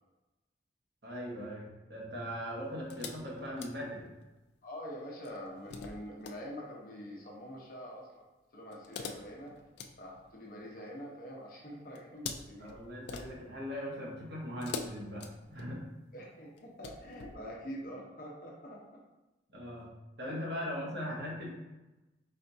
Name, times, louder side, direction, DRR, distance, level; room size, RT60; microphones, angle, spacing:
voice 1, 1.0-4.1 12.6-15.8 19.5-19.9 20.2-21.5, equal, 60° right, -3 dB, 1.1 m, -40 dB
sound 1, 2.9-4.4 5.2-6.4 8.7-10.9 11.9-13.7 14.6-16.0 16.6-17.4, left 5 dB, 65° left, 0.4 m, -45 dB
voice 2, 4.6-8.3 8.5-9.5 10.0-12.7 16.1-18.8 20.3-20.4 21.1-21.2, equal, 50° left, -3 dB, 0.9 m, -45 dB
4.3 x 3.4 x 2.7 m, 1.1 s
head